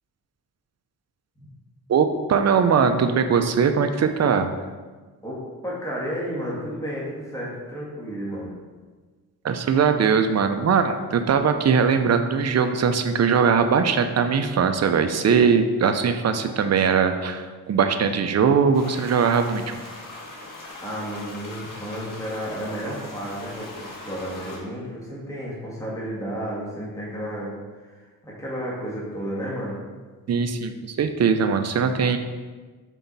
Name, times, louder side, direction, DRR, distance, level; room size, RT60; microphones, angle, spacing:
voice 1, 1.9-4.5 9.4-19.8 30.3-32.2, right 6 dB, 45° right, 8 dB, 0.6 m, -20 dB
voice 2, 5.2-8.5 20.8-27.5 27.8-29.8, equal, 10° left, -6 dB, 1.9 m, -32 dB
sound 1, 18.7-24.6, left 2 dB, 60° left, 1.5 m, -40 dB
5.7 x 4.5 x 4.1 m, 1.4 s
cardioid pair, 75°, 36 cm